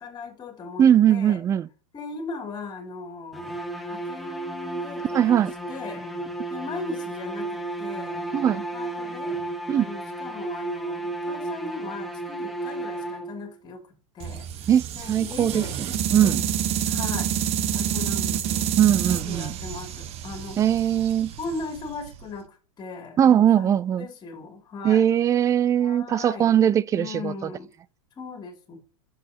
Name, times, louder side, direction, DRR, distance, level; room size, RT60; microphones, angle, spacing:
voice 1, 0.0-1.4 1.9-3.5 3.8-6.0 6.5-14.5 14.9-15.8 16.1-16.4 16.8-17.3 17.7-18.7 19.1-20.6 21.4-25.1 25.8-26.6 26.9-27.7 28.2-28.8, left 3 dB, 25° left, 3.0 m, -38 dB
voice 2, 0.8-1.7 5.1-5.5 8.3-8.6 9.7-9.9 14.7-15.6 16.1-16.4 18.8-19.5 20.6-21.3 23.2-24.1 24.8-27.5, right 10 dB, 20° right, 0.3 m, -20 dB
sound 1, 3.3-13.6, right 2 dB, ahead, 1.5 m, -33 dB
sound 2, 14.2-22.3, right 10 dB, 35° right, 1.1 m, -28 dB
10.0 x 7.1 x 2.9 m
hypercardioid pair, 125°, 17 cm